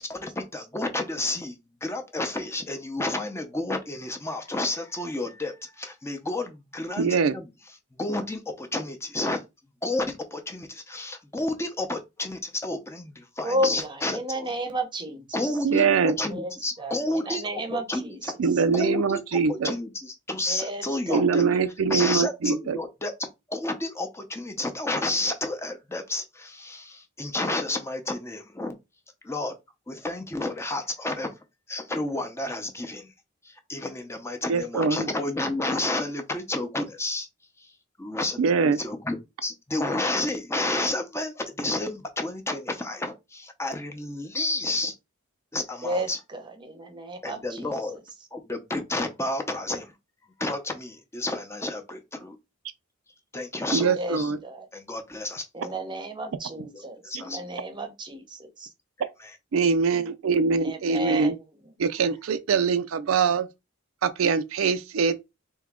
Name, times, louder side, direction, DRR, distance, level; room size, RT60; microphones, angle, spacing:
voice 1, 0.0-1.6 1.8-7.4 7.9-9.4 9.8-14.5 15.3-18.1 18.7-21.4 21.9-28.7 29.2-29.6 29.9-31.4 31.7-33.1 33.4-37.3 38.0-39.2 39.4-44.9 45.5-46.2 47.2-48.0 48.3-49.9 50.4-52.4 53.3-54.3 54.7-55.7 56.7-57.6, left 2 dB, 15° left, 0.6 m, -31 dB
voice 2, 7.0-7.4 15.6-16.2 18.4-19.7 21.1-22.8 34.5-35.1 38.4-38.8 53.7-54.4 59.5-61.3 61.8-63.5 64.0-65.2, right 5 dB, 75° right, 0.4 m, -23 dB
voice 3, 13.4-15.5 16.3-18.6 20.5-21.3 45.8-48.0 53.9-54.7 55.5-58.7 59.9-60.3 60.6-61.4, right 1 dB, 20° right, 0.8 m, -33 dB
3.6 x 2.8 x 3.5 m
head